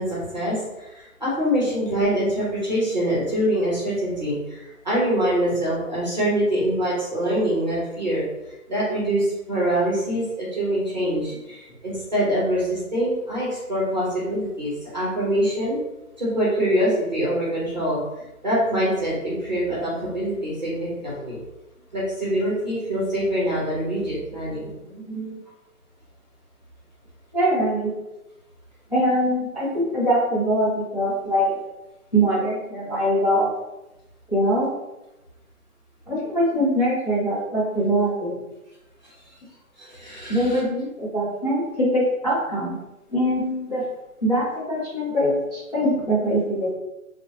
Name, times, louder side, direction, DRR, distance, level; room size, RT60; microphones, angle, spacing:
voice 1, 0.0-15.8 16.2-18.0 18.4-21.4 21.9-24.7 39.8-40.6, equal, 30° right, -7 dB, 0.7 m, -24 dB
voice 2, 24.8-25.4 27.3-27.9 28.9-31.6 32.1-33.5 34.3-34.7 36.1-38.4 40.3-42.8 43.1-43.8 44.2-46.7, equal, 30° left, -11 dB, 0.7 m, -23 dB
2.6 x 2.2 x 2.7 m, 0.98 s
hypercardioid pair, 180°, 44 cm